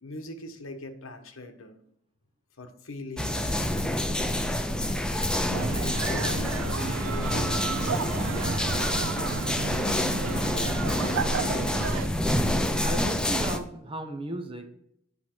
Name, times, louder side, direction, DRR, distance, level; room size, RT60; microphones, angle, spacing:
voice 1, 0.0-1.8 2.6-3.8 5.8-8.3, left 2 dB, 75° left, 6 dB, 1.1 m, -42 dB
sound 1, 3.2-13.6, left 1 dB, 5° left, 0.5 m, -27 dB
sound 2, 5.5-12.1, right 5 dB, 75° right, 0.5 m, -33 dB
voice 2, 12.8-14.7, right 2 dB, 25° right, 6 dB, 0.9 m, -35 dB
9.6 x 5.8 x 4.5 m, 0.73 s
head